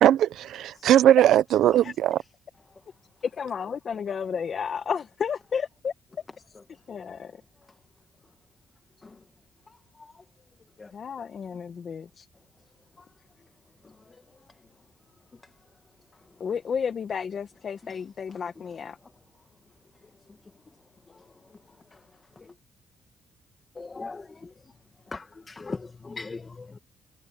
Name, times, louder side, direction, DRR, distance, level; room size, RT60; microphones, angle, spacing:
voice 1, 0.0-2.2, right 11 dB, 80° right, 0.8 m, -19 dB
voice 2, 3.2-5.9 6.9-7.4 10.9-12.3 16.4-19.0, left 6 dB, 50° left, 1.7 m, -32 dB
voice 3, 23.8-24.5 25.1-26.8, left 3 dB, 30° left, 1.7 m, -39 dB
cardioid pair, 90°, 0 cm